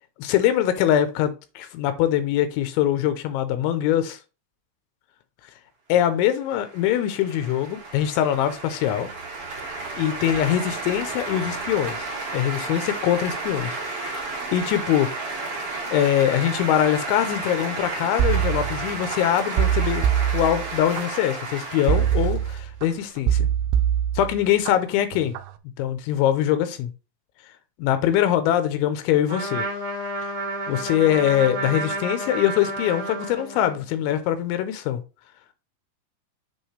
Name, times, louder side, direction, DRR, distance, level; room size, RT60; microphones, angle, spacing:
voice 1, 0.2-4.2 5.9-9.1 10.0-12.1 12.3-14.2 14.5-15.1 15.9-20.0 20.3-23.5 24.2-25.3 25.8-26.9 27.8-29.7 30.7-35.0, left 11 dB, 85° left, 3.1 m, -23 dB
sound 1, 6.4-23.1, right 3 dB, 55° right, 1.7 m, -32 dB
sound 2, 18.2-19.2 19.6-21.0 21.9-22.9 23.3-24.7 25.1-25.5, right 10 dB, 85° right, 2.3 m, -23 dB
Trumpet, 29.3-33.8, right 2 dB, 30° right, 2.1 m, -30 dB
8.0 x 4.0 x 3.2 m
omnidirectional pair, 5.4 m